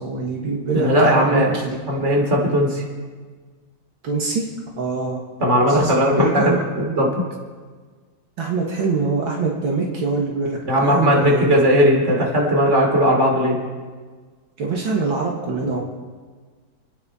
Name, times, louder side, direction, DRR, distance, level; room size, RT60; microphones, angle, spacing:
voice 1, 0.0-1.8 4.0-4.5 4.8-5.2 5.5-6.6 8.4-10.6 10.8-11.5 14.6-15.8, right 4 dB, 75° right, -2 dB, 2.5 m, -24 dB
voice 2, 0.7-1.5 1.9-2.8 5.4-6.4 6.8-7.1 10.6-13.6, equal, 35° right, -1 dB, 3.3 m, -17 dB
29.5 x 9.9 x 4.3 m, 1.5 s
omnidirectional pair, 2.2 m